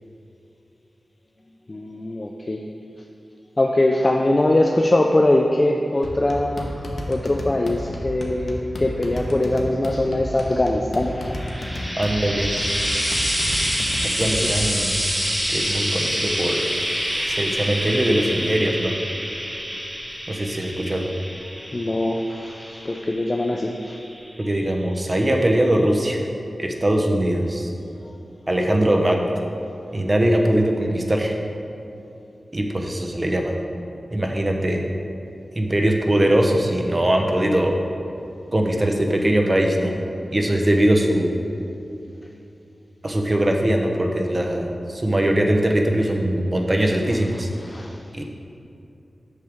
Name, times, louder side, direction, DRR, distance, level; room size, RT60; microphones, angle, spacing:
voice 1, 1.7-2.6 3.6-6.8 7.1-11.3 21.7-24.0 47.6-48.0, left 1 dB, 30° left, 1 dB, 0.4 m, -22 dB
sound 1, 6.0-14.8, left 1 dB, 60° left, 0.9 m, -32 dB
Frying (food), 11.1-24.6 25.5-25.6, equal, 15° right, 1.4 m, -27 dB
voice 2, 12.0-12.5 14.2-15.0 15.5-16.7 17.2-19.0 20.3-21.1 24.4-26.2 26.6-27.7 28.5-29.2 29.9-31.3 32.5-33.6 34.1-34.8 35.5-37.8 38.5-40.0 40.3-41.3 43.0-47.5 48.1-48.2, right 1 dB, 30° right, 2 dB, 0.8 m, -21 dB
7.9 x 6.5 x 3.5 m, 2.7 s
wide cardioid pair, 85°, 0 cm